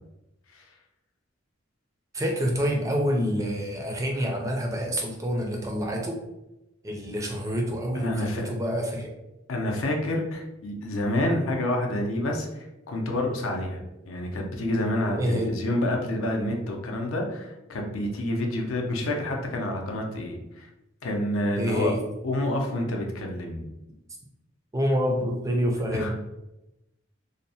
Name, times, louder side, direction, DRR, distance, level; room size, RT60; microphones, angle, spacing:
voice 1, 2.1-6.2 6.8-9.1 15.2-15.5 21.6-22.0 24.7-26.1, equal, 15° right, 0 dB, 0.3 m, -27 dB
voice 2, 7.9-8.5 9.5-13.8 14.1-20.7 21.0-21.9 22.2-23.7 25.9-26.1, left 1 dB, 75° left, 2 dB, 0.5 m, -28 dB
2.7 x 2.0 x 2.7 m, 0.94 s
head